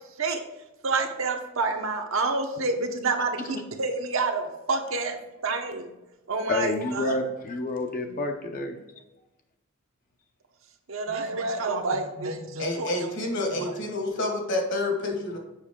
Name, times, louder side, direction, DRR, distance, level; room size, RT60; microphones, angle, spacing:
voice 1, 0.8-5.2 5.4-5.9 6.3-7.2 10.9-13.1 13.6-13.7, right 3 dB, 65° right, 3 dB, 0.9 m, -28 dB
voice 2, 6.5-8.8, left 2 dB, 40° left, 4 dB, 0.7 m, -29 dB
voice 3, 12.6-15.4, left 2 dB, 55° left, 2 dB, 1.5 m, -28 dB
7.3 x 5.4 x 3.6 m, 0.98 s
head